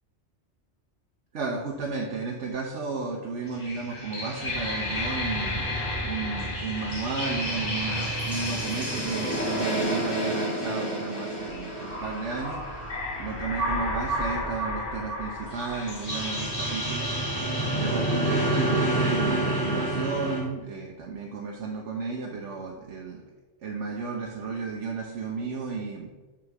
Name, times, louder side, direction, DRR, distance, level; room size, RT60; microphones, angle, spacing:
voice 1, 1.3-5.8 6.0-17.1 17.7-23.2 23.6-26.1, right 4 dB, 85° right, 0 dB, 1.1 m, -33 dB
sound 1, 3.5-20.4, right 1 dB, 30° left, 2.5 m, -29 dB
6.4 x 3.7 x 6.0 m, 1.2 s
omnidirectional pair, 1.2 m